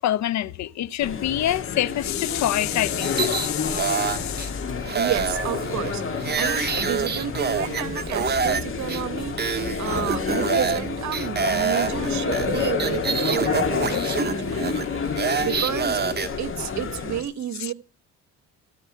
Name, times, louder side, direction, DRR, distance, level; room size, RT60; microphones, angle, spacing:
voice 1, 0.0-4.6 13.9-14.0 17.6-17.7, left 13 dB, 65° left, 0.6 m, -26 dB
sound 1, 1.0-17.2, left 5 dB, 45° left, 2.1 m, -29 dB
sound 2, 3.0-4.5 4.9-8.6 8.9-9.0 9.4-10.8 11.1-16.3, right 6 dB, 35° right, 1.5 m, -26 dB
voice 2, 4.9-16.0 16.4-17.7, right 10 dB, 65° right, 1.1 m, -31 dB
15.0 x 5.4 x 8.8 m
cardioid pair, 90°, 30 cm